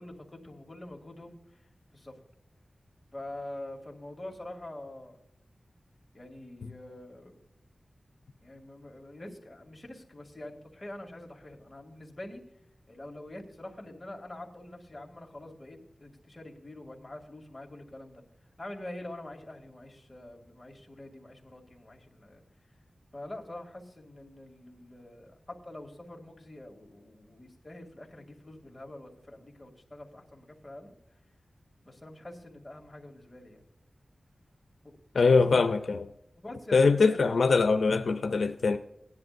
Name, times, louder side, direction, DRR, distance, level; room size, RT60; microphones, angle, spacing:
voice 1, 0.0-2.2 3.1-5.2 6.1-7.3 8.4-12.4 12.9-18.2 18.6-22.4 23.1-30.9 31.8-33.6 34.8-34.9 36.4-37.4, left 1 dB, 25° left, 2.6 m, -45 dB
voice 2, 35.1-36.1 36.7-38.8, left 4 dB, 85° left, 0.6 m, -23 dB
18.0 x 10.5 x 2.6 m
wide cardioid pair, 85°, 0 cm